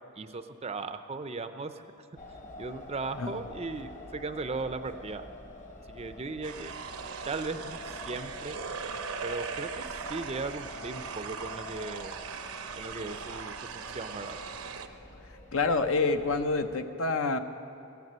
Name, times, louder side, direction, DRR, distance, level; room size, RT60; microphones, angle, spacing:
voice 1, 0.2-2.1 2.6-5.2 5.9-6.7 7.3-8.6 9.2-12.2 12.8-14.4, right 3 dB, 30° right, 10 dB, 0.5 m, -37 dB
sound 1, 2.2-16.8, left 2 dB, 35° left, 1.1 m, -47 dB
sound 2, 6.4-14.9, right 5 dB, 80° right, 0.8 m, -39 dB
voice 2, 15.5-17.4, left 3 dB, 65° left, 8 dB, 0.7 m, -27 dB
16.0 x 9.4 x 7.4 m, 3.0 s
head